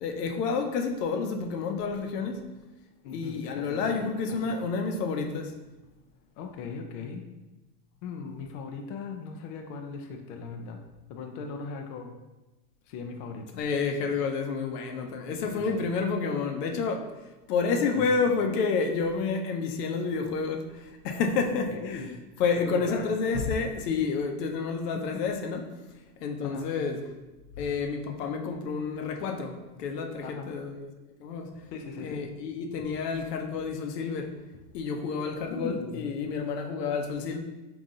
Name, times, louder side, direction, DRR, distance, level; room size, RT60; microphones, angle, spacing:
voice 1, 0.0-2.5 3.1-5.6 13.5-17.1 17.5-22.1 22.4-25.6 26.2-27.0 27.6-30.9 31.2-31.5 32.0-34.4 34.7-37.4, left 5 dB, 75° left, 4 dB, 0.8 m, -29 dB
voice 2, 3.0-4.1 4.5-4.6 6.4-7.2 8.0-10.8 11.1-12.2 12.9-13.5 15.5-15.8 17.7-18.1 21.7-22.2 22.6-23.1 26.4-26.7 30.2-30.5 31.7-32.2 35.4-36.1, left 5 dB, 40° left, 3 dB, 0.4 m, -39 dB
3.9 x 2.9 x 3.8 m, 1.1 s
supercardioid pair, 125°, 49 cm